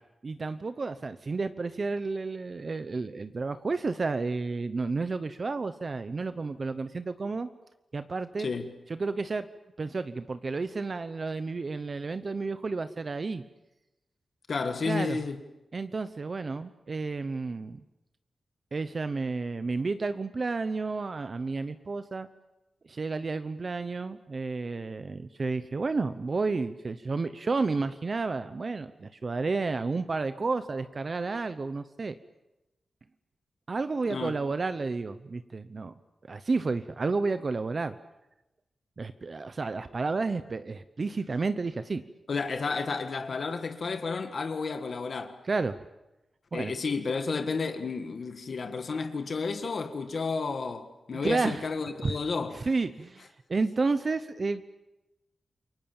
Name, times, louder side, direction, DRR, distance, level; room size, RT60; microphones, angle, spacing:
voice 1, 0.2-7.5 7.9-8.5 8.9-9.5 9.8-13.4 14.8-15.2 15.7-17.8 18.7-22.3 22.9-32.2 33.7-35.9 36.3-38.0 39.0-42.0 45.5-45.8 46.5-46.7 51.2-51.6 52.0-52.1 52.5-54.6, right 3 dB, 35° right, 0.8 m, -31 dB
voice 2, 14.5-15.4 34.1-34.4 42.3-45.4 46.5-52.7, left 4 dB, 50° left, 1.6 m, -32 dB
28.5 x 24.0 x 7.2 m
wide cardioid pair, 165°, 0 cm